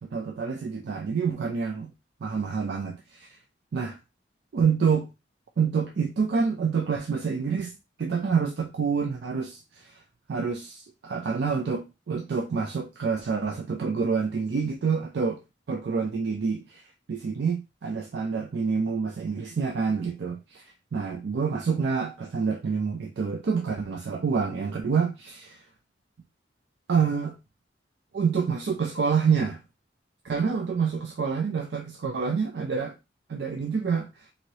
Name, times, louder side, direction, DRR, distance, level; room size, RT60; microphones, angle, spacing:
voice 1, 0.0-1.9 2.2-3.4 3.7-4.0 4.5-5.1 5.6-7.7 8.0-10.0 10.3-15.4 15.7-16.8 17.1-25.6 26.9-27.3 28.1-29.6 30.2-32.9 33.3-34.3, right 5 dB, 65° right, 0.4 m, -27 dB
2.8 x 2.6 x 3.0 m
head